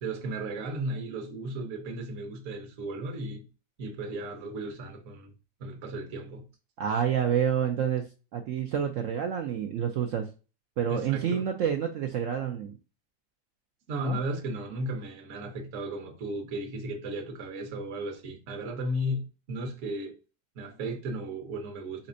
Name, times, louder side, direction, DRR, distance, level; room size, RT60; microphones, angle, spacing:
voice 1, 0.0-3.5 3.8-5.3 5.6-6.5 10.9-11.4 13.9-20.1 20.6-22.1, right 1 dB, 50° right, 1.1 m, -35 dB
voice 2, 6.8-10.3 10.8-12.7 14.0-14.2, right 8 dB, 85° right, 0.7 m, -28 dB
4.2 x 4.2 x 2.5 m
omnidirectional pair, 1.9 m